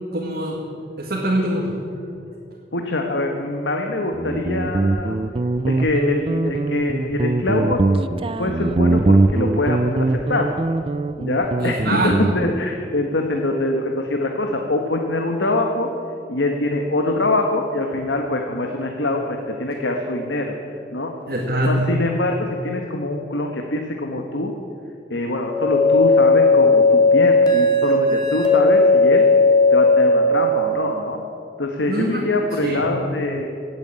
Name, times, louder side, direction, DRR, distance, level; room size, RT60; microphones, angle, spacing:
voice 1, 0.1-0.6 1.0-1.8 11.6-12.3 21.3-21.9 31.8-32.2 32.6-32.9, right 1 dB, 55° right, -2 dB, 2.0 m, -23 dB
voice 2, 2.7-5.2 5.7-8.0 8.4-10.5 11.2-15.9 16.3-20.5 20.9-21.1 21.6-24.5 25.1-29.3 29.7-31.2 31.6-33.5, left 2 dB, 90° left, 3 dB, 1.4 m, -24 dB
Guitar, 4.1-12.6, right 2 dB, 30° right, 0.4 m, -21 dB
sound 1, 25.5-30.4, left 3 dB, 25° left, 2.4 m, -15 dB
17.5 x 8.8 x 8.8 m, 2.5 s
head